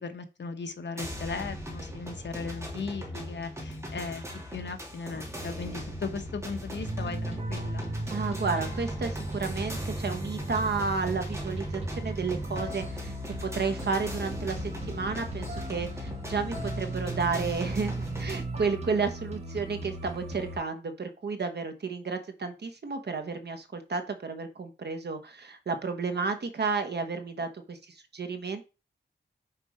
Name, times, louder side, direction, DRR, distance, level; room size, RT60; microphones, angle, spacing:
voice 1, 0.0-4.2 4.5-7.8, left 4 dB, 65° left, 1.1 m, -37 dB
sound 1, 1.0-18.4, equal, 15° right, 2.6 m, -40 dB
sound 2, 6.8-20.6, right 1 dB, 35° right, 2.1 m, -36 dB
voice 2, 8.1-28.6, right 4 dB, 60° right, 1.2 m, -32 dB
6.1 x 4.5 x 4.9 m
wide cardioid pair, 95°, 19 cm